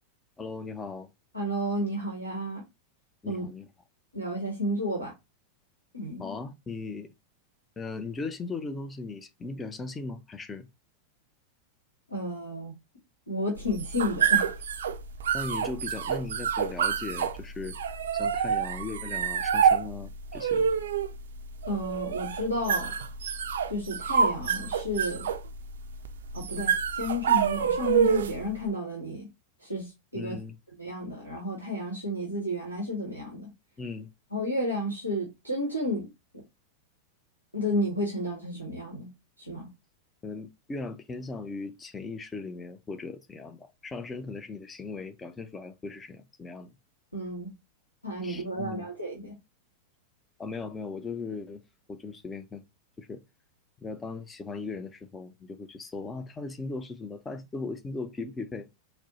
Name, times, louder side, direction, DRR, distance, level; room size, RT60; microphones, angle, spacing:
voice 1, 0.4-1.1 3.2-3.7 6.2-7.1 7.8-10.7 15.3-17.8 18.1-20.7 30.1-30.6 33.8-34.1 40.2-46.8 48.2-48.9 50.4-51.6 51.9-52.6 53.0-53.2 53.8-58.7, left 3 dB, 15° left, 0.4 m, -38 dB
voice 2, 1.3-2.6 3.2-3.4 4.1-5.1 5.9-6.3 12.1-12.7 13.3-14.5 21.7-22.9 23.7-25.3 26.3-29.3 29.6-30.4 30.8-33.5 34.3-36.1 36.3-36.4 37.5-39.1 39.4-39.7 47.1-47.5 48.0-49.3, equal, 85° left, 1.0 m, -32 dB
sound 1, 13.6-28.5, right 7 dB, 65° right, 0.3 m, -27 dB
4.2 x 2.0 x 2.8 m
figure-of-eight pair, 90°, 0 cm